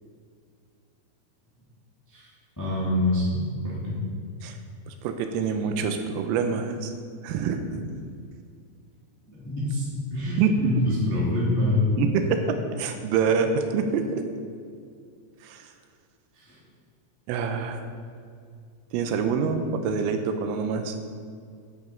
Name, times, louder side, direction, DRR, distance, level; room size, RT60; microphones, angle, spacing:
voice 1, 2.6-3.9 9.3-9.8 10.1-11.9 16.3-16.6, left 1 dB, 10° left, -7 dB, 1.0 m, -26 dB
voice 2, 4.9-6.9 7.2-7.8 10.4-10.7 12.0-14.2 15.4-15.7 17.3-17.8 18.9-21.0, right 5 dB, 90° right, 6 dB, 3.4 m, -26 dB
10.5 x 9.3 x 4.7 m, 2.2 s
omnidirectional pair, 5.9 m